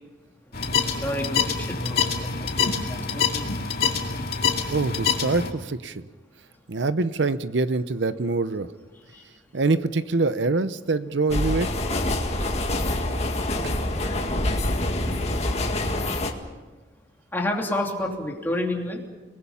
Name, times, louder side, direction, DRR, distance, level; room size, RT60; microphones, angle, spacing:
sound 1, 0.5-5.5, left 6 dB, 55° left, 2.4 m, -26 dB
voice 1, 0.9-3.5 8.9-9.3 15.1-15.3 17.3-19.1, left 1 dB, 10° left, 0 dB, 3.0 m, -30 dB
voice 2, 4.7-6.0 6.7-8.7 9.5-11.7 13.6-13.7, right 3 dB, 75° right, 13 dB, 0.8 m, -24 dB
sound 2, 11.3-16.3, left 1 dB, 35° left, 1.9 m, -26 dB
30.0 x 20.0 x 5.7 m, 1.3 s
head